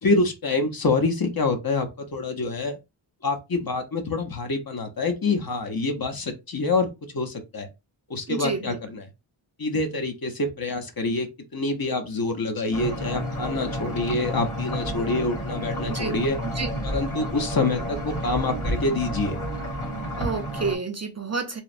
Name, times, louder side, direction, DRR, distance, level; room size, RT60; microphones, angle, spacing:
voice 1, 0.0-2.8 3.2-6.9 7.1-7.7 8.1-9.1 9.6-11.3 11.5-16.4 16.8-19.4, left 3 dB, 45° left, 0.7 m, -26 dB
voice 2, 8.3-8.8 15.9-16.2 16.6-16.7 20.2-21.6, right 4 dB, 35° right, 0.4 m, -29 dB
sound 1, 12.7-20.7, equal, 80° left, 1.7 m, -30 dB
3.0 x 2.0 x 2.4 m
wide cardioid pair, 50°, 49 cm